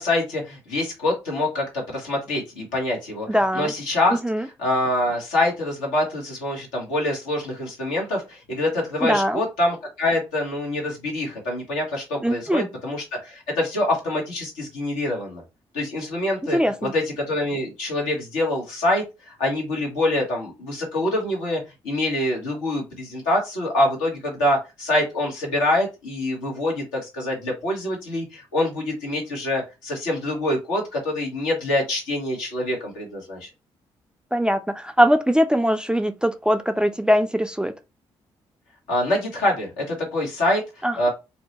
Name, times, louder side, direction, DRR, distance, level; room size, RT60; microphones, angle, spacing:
voice 1, 0.0-3.3 3.5-4.2 4.6-15.4 15.7-33.5 38.9-41.1, left 1 dB, 80° left, 1.1 m, -25 dB
voice 2, 3.3-3.7 4.2-4.5 9.0-9.4 12.2-12.7 16.5-16.9 34.3-37.7 40.8-41.1, equal, 5° right, 0.3 m, -21 dB
2.6 x 2.1 x 2.8 m
hypercardioid pair, 40°, 14 cm